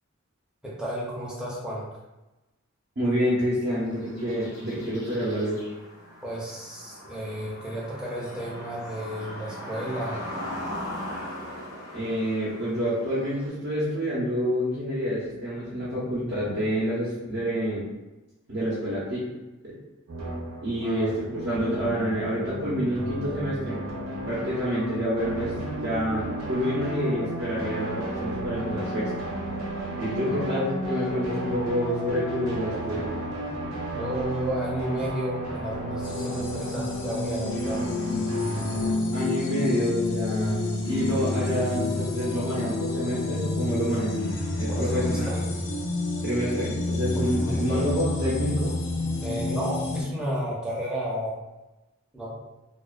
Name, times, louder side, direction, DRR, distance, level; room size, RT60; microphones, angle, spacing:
voice 1, 0.6-1.9 6.2-10.2 20.8-21.1 30.3-30.5 33.9-37.8 44.7-45.4 47.4-47.8 49.2-51.4 52.1-52.4, right 1 dB, 5° right, -6 dB, 0.6 m, -32 dB
voice 2, 3.0-5.6 11.9-17.8 18.5-19.2 19.6-19.7 20.6-23.9 24.3-29.1 30.0-33.1 39.1-44.2 44.6-45.3 46.2-48.7, equal, 50° right, -9 dB, 0.7 m, -28 dB
sound 1, 3.8-13.5, left 1 dB, 75° left, 1.1 m, -39 dB
sound 2, 20.1-39.0, right 1 dB, 85° right, 0.7 m, -33 dB
sound 3, 36.0-50.0, left 2 dB, 60° left, 0.4 m, -29 dB
2.3 x 2.2 x 2.4 m, 1.0 s
head